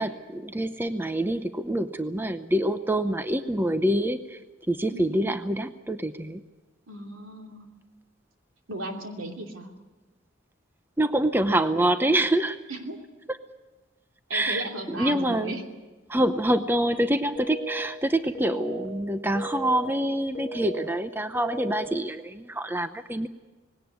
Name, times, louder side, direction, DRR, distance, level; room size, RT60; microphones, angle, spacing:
voice 1, 0.0-4.4 4.7-6.4 11.0-12.6 14.3-15.6 16.1-23.3, right 1 dB, 10° right, 10 dB, 0.7 m, -26 dB
voice 2, 4.9-5.4 6.9-7.7 8.7-9.7 12.7-13.0 14.3-15.6, right 1 dB, 90° right, 2 dB, 2.9 m, -36 dB
sound 1, 17.4-17.9 18.4-18.9 19.4-19.9 20.4-20.9 21.4-21.9, right 1 dB, 10° left, 5.3 m, -35 dB
20.0 x 17.5 x 9.5 m, 1.2 s
head